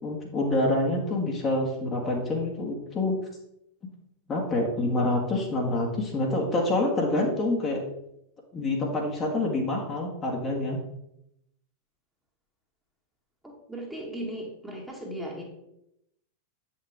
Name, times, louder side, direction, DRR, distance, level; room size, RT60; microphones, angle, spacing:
voice 1, 0.0-3.2 4.3-7.8 8.5-10.8, left 2 dB, 25° left, -1 dB, 2.0 m, -27 dB
voice 2, 13.4-15.4, right 1 dB, 5° right, -2 dB, 2.1 m, -37 dB
9.4 x 6.6 x 3.6 m, 0.80 s
figure-of-eight pair, 90°, 0 cm